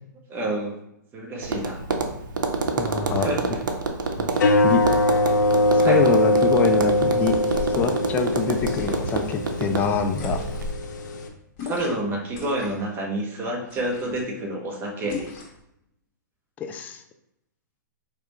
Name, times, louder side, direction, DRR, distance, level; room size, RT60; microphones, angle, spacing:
voice 1, 0.3-0.8 1.1-1.8 3.2-3.6 5.8-6.0 11.6-15.3, right 1 dB, 20° right, 0 dB, 1.0 m, -28 dB
Tap, 1.4-10.7, right 3 dB, 80° right, 0.7 m, -28 dB
voice 2, 2.8-3.3 4.2-4.3 4.6-4.8 5.9-7.4 7.8-10.4 16.6-17.0, left 5 dB, 15° left, 5 dB, 0.4 m, -25 dB
sound 1, 4.3-11.3, left 1 dB, 70° left, 0.8 m, -22 dB
sound 2, 7.1-7.8 8.5-9.2 10.1-10.7 11.6-12.0 12.3-12.9 13.7-14.3 15.1-15.6, left 4 dB, 45° left, 1.5 m, -38 dB
4.7 x 3.3 x 3.1 m, 0.80 s
hypercardioid pair, 135°, 10 cm